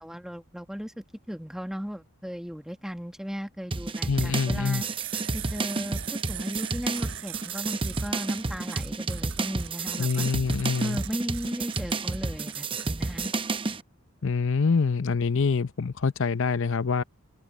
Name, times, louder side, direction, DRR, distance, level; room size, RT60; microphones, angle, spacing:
voice 1, 0.0-4.9 5.3-10.3 10.8-13.3, equal, ahead, 1.3 m, -36 dB
sound 1, 3.7-13.8, right 3 dB, 25° right, 0.7 m, -31 dB
voice 2, 4.1-4.8 10.0-11.0 14.2-17.0, left 5 dB, 60° left, 0.7 m, -25 dB
sound 2, 4.7-12.9, right 13 dB, 65° right, 7.0 m, -41 dB
open air
head